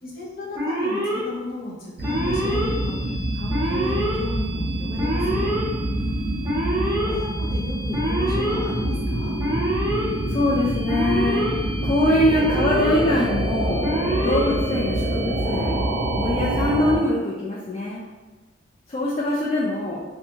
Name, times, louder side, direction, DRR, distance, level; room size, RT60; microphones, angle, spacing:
voice 1, 0.0-3.0 3.3-5.5 6.7-9.3, left 1 dB, 50° left, -6 dB, 0.7 m, -34 dB
Alarm, 0.5-1.2 2.0-2.7 3.5-4.2 5.0-5.6 6.4-7.1 7.9-8.6 9.4-10.0 10.9-11.5 12.3-13.0 13.8-14.5, right 1 dB, 15° right, 0.6 m, -25 dB
sound 1, 2.0-17.0, right 1 dB, 55° right, 0.4 m, -26 dB
voice 2, 5.9-6.7 10.3-11.5 11.8-13.9 14.2-15.8 16.1-18.0 18.9-20.0, left 1 dB, 30° left, -6 dB, 0.3 m, -23 dB
2.6 x 2.3 x 2.7 m, 1.3 s
head